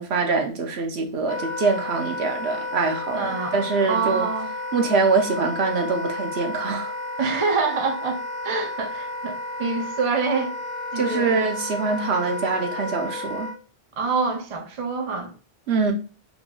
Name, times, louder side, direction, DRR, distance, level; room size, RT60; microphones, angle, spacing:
voice 1, 0.0-4.3 4.7-6.9 11.0-13.5 15.7-15.9, right 4 dB, 70° right, 0.9 m, -24 dB
Wind instrument woodwind instrument, 1.3-13.6, left 2 dB, 55° left, 0.3 m, -32 dB
voice 2, 3.1-4.5 7.2-10.5 10.9-11.3 14.0-15.4, right 4 dB, 40° right, 0.5 m, -26 dB
3.7 x 3.0 x 2.2 m
omnidirectional pair, 1.2 m